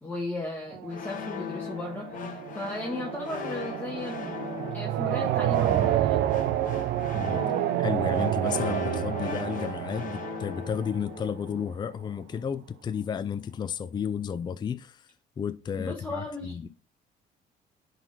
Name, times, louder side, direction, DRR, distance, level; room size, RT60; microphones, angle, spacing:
voice 1, 0.0-4.3 4.7-6.2 15.8-16.7, left 2 dB, 10° left, 1.7 m, -36 dB
sound 1, 0.7-11.5, right 13 dB, 80° right, 0.6 m, -29 dB
sound 2, 0.9-11.8, left 8 dB, 50° left, 1.1 m, -39 dB
voice 2, 7.1-7.5 7.8-15.1 15.4-16.7, left 7 dB, 25° left, 0.4 m, -32 dB
10.5 x 4.0 x 4.1 m
cardioid pair, 110°, 17 cm